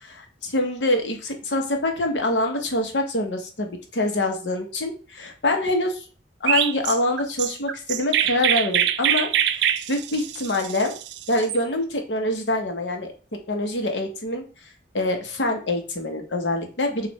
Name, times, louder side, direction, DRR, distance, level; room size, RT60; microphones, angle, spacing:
voice 1, 0.0-6.0 6.4-10.9 11.3-13.1 13.5-14.4 14.9-17.1, left 1 dB, 80° left, 4 dB, 0.9 m, -25 dB
Chirp tweet, 6.5-11.6, right 10 dB, 70° right, 0.3 m, -24 dB
6.3 x 2.4 x 3.1 m, 0.36 s
head